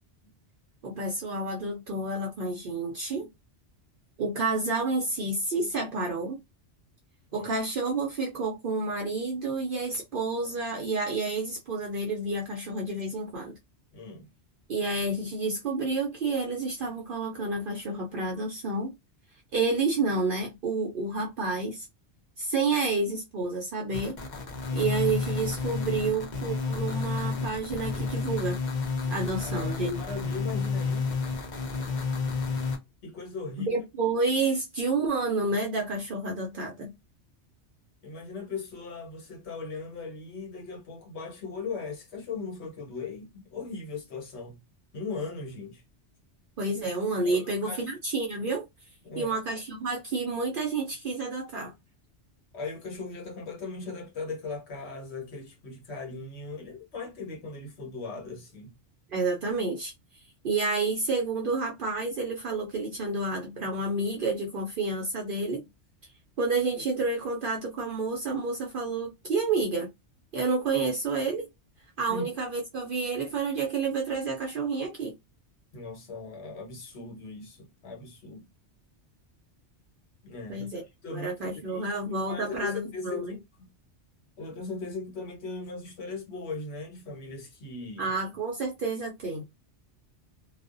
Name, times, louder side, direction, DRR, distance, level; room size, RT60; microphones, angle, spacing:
voice 1, 0.8-3.3 4.2-6.4 7.3-13.6 14.7-18.9 19.5-21.9 22.4-24.2 24.7-28.6 29.1-30.0 33.6-36.9 46.6-48.6 49.2-51.7 59.1-59.9 60.4-65.7 66.4-69.9 70.3-71.5 72.0-75.1 80.5-80.8 81.1-83.4 88.0-89.4, right 3 dB, 60° right, 0.6 m, -29 dB
voice 2, 13.9-14.3 29.4-31.1 33.0-33.8 38.0-44.6 44.9-45.8 47.2-47.9 49.0-49.4 52.5-58.8 72.1-72.3 75.7-78.4 80.2-80.7 81.0-82.0 82.2-83.7 84.4-88.1, left 4 dB, 70° left, 1.2 m, -39 dB
sound 1, 23.9-32.8, left 4 dB, 50° left, 0.7 m, -31 dB
2.4 x 2.1 x 2.4 m
omnidirectional pair, 1.2 m